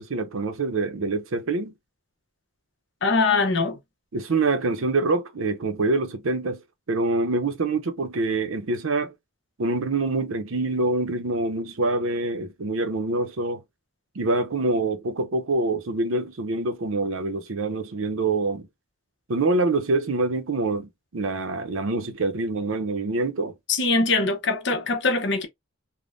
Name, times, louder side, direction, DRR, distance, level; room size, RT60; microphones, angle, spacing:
voice 1, 0.0-1.7 4.1-6.6 6.9-9.1 9.6-13.6 14.2-18.7 19.3-23.5, right 2 dB, 85° right, 0.6 m, -25 dB
voice 2, 3.0-3.8 23.7-25.5, left 3 dB, 60° left, 0.8 m, -22 dB
3.4 x 2.1 x 2.5 m
head